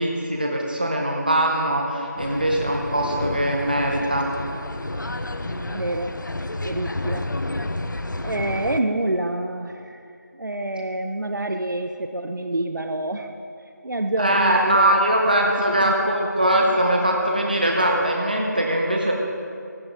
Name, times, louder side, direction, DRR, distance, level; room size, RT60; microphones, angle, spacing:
voice 1, 0.0-4.3 14.2-19.1, right 1 dB, 30° right, 0 dB, 0.9 m, -21 dB
sound 1, 2.2-8.8, left 2 dB, 85° left, 0.8 m, -30 dB
voice 2, 5.4-6.2 6.6-7.4 8.2-10.0 10.3-13.3 13.8-15.9, right 1 dB, 85° right, 6 dB, 0.8 m, -27 dB
15.5 x 11.5 x 3.5 m, 2.4 s
figure-of-eight pair, 180°, 10 cm